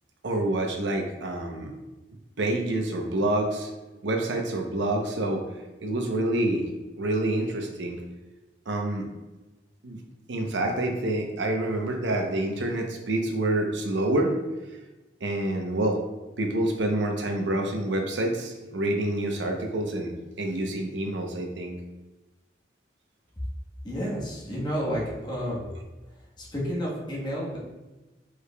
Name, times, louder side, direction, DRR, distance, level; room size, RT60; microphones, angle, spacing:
voice 1, 0.2-1.7 2.4-3.7 4.0-5.4 5.8-6.7 7.0-8.0 8.7-9.1 9.8-10.0 10.3-14.4 15.2-16.0 16.4-21.8 25.6-25.7, right 1 dB, 85° right, 3 dB, 0.7 m, -27 dB
voice 2, 23.8-25.6 26.4-27.6, equal, 25° left, -5 dB, 1.2 m, -30 dB
4.9 x 4.8 x 2.2 m, 1.1 s
head